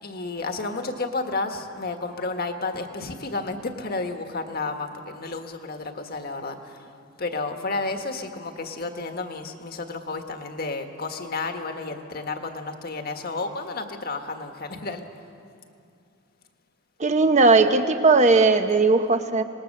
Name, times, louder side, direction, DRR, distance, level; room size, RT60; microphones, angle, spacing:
voice 1, 0.0-6.9 7.2-15.0, left 3 dB, 50° left, 5 dB, 1.6 m, -31 dB
voice 2, 17.0-19.4, right 3 dB, 35° right, 7 dB, 1.1 m, -18 dB
26.0 x 20.0 x 6.7 m, 2.6 s
head